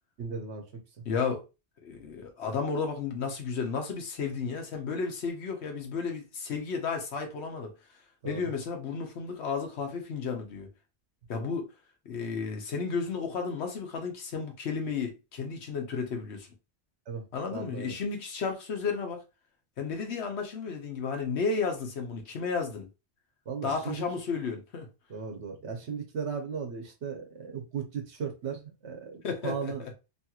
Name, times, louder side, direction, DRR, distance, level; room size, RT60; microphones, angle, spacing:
voice 1, 0.2-0.6 8.2-8.4 17.1-17.2 17.5-18.0 23.5-24.0 25.1-29.8, right 6 dB, 80° right, 1.1 m, -36 dB
voice 2, 1.0-1.4 1.8-7.7 8.2-10.7 11.3-11.7 12.1-16.5 17.3-19.2 19.8-22.9 23.6-24.9 29.2-29.9, left 5 dB, 75° left, 1.1 m, -33 dB
3.0 x 2.9 x 2.3 m
omnidirectional pair, 1.1 m